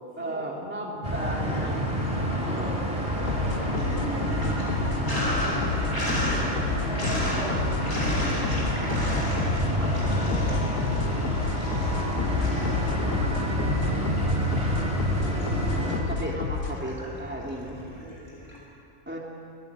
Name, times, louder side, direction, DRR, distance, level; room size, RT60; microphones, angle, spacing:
voice 1, 0.2-1.8 2.5-2.9 15.6-17.8 19.1-19.2, right 1 dB, 10° right, -2 dB, 3.1 m, -35 dB
sound 1, 1.0-16.0, equal, 25° right, 4.2 m, -28 dB
Sink (filling or washing), 1.4-2.1 2.5-18.6, equal, 40° left, 6.5 m, -34 dB
sound 2, 3.3-16.9, left 6 dB, 90° left, 1.3 m, -31 dB
voice 2, 3.4-10.8 12.6-14.9 15.2-15.8 17.6-18.6, equal, 55° left, -5 dB, 7.5 m, -43 dB
27.5 x 18.0 x 9.6 m, 2.5 s
omnidirectional pair, 1.4 m